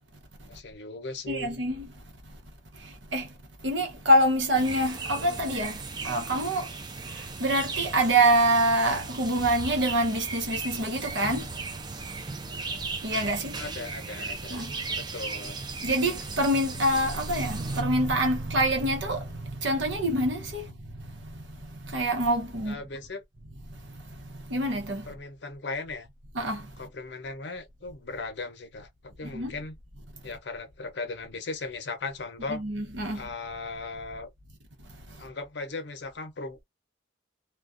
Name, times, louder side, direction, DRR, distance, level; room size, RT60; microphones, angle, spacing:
voice 1, 0.5-1.5 13.6-15.6 22.6-23.2 25.0-26.1 26.8-29.8 30.2-32.6 33.1-34.3 35.2-36.6, left 3 dB, 70° left, 0.7 m, -37 dB
voice 2, 1.3-1.9 3.1-3.3 3.6-5.8 6.0-6.7 7.4-11.5 13.0-13.5 14.5-14.7 15.8-21.0 21.9-22.8 24.5-25.0 26.3-26.7 29.2-29.5 32.5-33.2, right 1 dB, 85° right, 0.9 m, -25 dB
sound 1, 4.5-17.8, right 4 dB, 25° right, 0.4 m, -37 dB
2.4 x 2.2 x 2.4 m
head